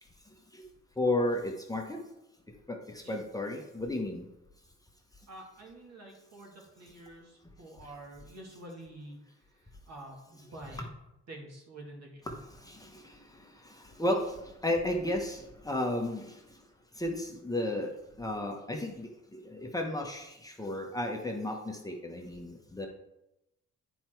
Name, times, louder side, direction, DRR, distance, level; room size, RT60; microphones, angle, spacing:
voice 1, 1.0-2.0 2.7-4.2 12.3-16.4 17.0-17.9 18.2-22.9, left 1 dB, 10° left, 1 dB, 1.1 m, -33 dB
voice 2, 5.3-9.2 9.5-10.9 11.3-12.2, right 1 dB, 60° right, -1 dB, 2.4 m, -48 dB
9.1 x 4.6 x 4.5 m, 0.90 s
cardioid pair, 90°, 30 cm